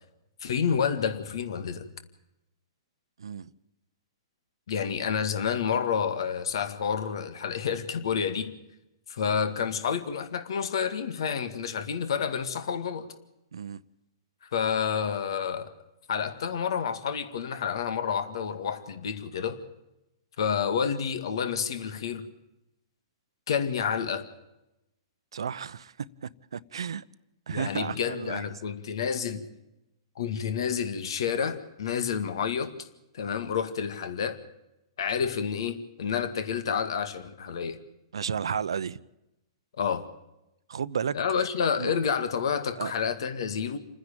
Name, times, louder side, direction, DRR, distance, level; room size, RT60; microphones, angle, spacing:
voice 1, 0.4-1.9 4.7-8.5 9.1-13.1 14.4-15.7 16.1-19.6 20.4-22.3 23.5-24.3 27.5-29.4 30.2-32.9 33.1-34.4 35.0-37.8 39.8-40.1 41.1-43.8, left 7 dB, 75° left, 2.0 m, -29 dB
voice 2, 3.2-3.5 13.5-13.8 25.3-27.0 27.5-28.4 38.1-39.0 40.7-41.2 41.8-41.9 42.8-42.9, right 7 dB, 85° right, 0.8 m, -33 dB
29.0 x 10.0 x 8.7 m
hypercardioid pair, 135°, 3 cm